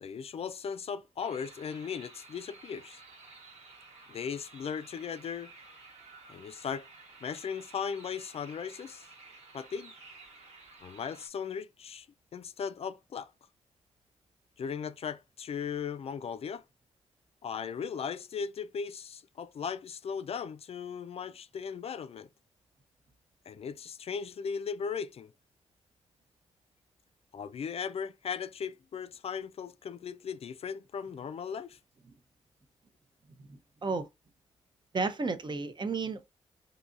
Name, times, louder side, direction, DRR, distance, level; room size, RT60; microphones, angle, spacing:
voice 1, 0.0-3.0 4.1-5.5 6.3-6.9 7.2-9.1 9.5-9.9 10.8-12.1 12.3-13.3 14.6-16.6 17.4-22.3 23.5-25.3 27.3-31.8, left 6 dB, 55° left, 0.4 m, -37 dB
sound 1, 1.2-11.3, right 3 dB, 70° right, 1.2 m, -53 dB
voice 2, 33.5-34.1 34.9-36.2, right 4 dB, 40° right, 0.6 m, -32 dB
3.9 x 2.7 x 2.5 m
cardioid pair, 55°, 12 cm